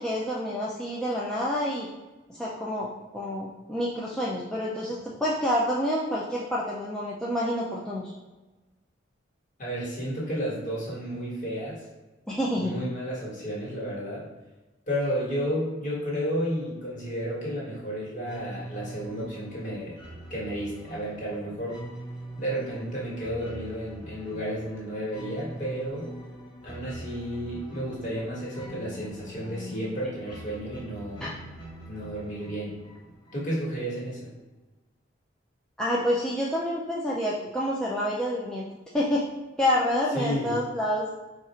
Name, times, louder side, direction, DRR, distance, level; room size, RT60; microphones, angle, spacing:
voice 1, 0.0-1.9 2.3-8.1 12.3-12.7 31.2-31.3 35.8-38.7 38.9-39.3 39.6-41.1, equal, 5° left, -6 dB, 0.4 m, -28 dB
voice 2, 9.6-11.8 12.6-14.3 14.9-19.9 20.3-21.8 22.4-26.1 26.6-31.2 31.9-32.8 33.3-34.3 40.1-40.6, equal, 40° left, -6 dB, 1.5 m, -32 dB
sound 1, 18.3-33.8, equal, 25° left, 0.9 m, -43 dB
4.0 x 2.4 x 4.3 m, 1.1 s
head